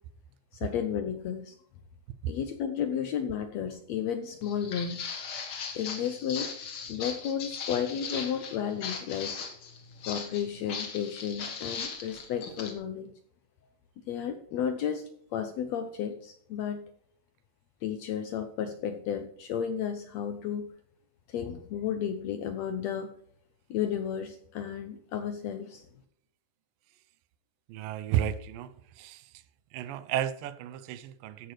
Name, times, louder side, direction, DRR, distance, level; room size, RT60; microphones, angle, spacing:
voice 1, 0.6-1.5 2.3-5.0 5.7-6.5 6.9-9.3 10.1-13.1 14.1-16.8 17.8-20.7 21.3-23.1 23.7-25.9, left 8 dB, 85° left, 1.5 m, -33 dB
Walk footsteps, 4.4-12.7, left 6 dB, 50° left, 1.8 m, -38 dB
voice 2, 27.7-29.4 29.7-31.5, right 11 dB, 85° right, 2.4 m, -33 dB
14.5 x 10.5 x 3.2 m
omnidirectional pair, 3.9 m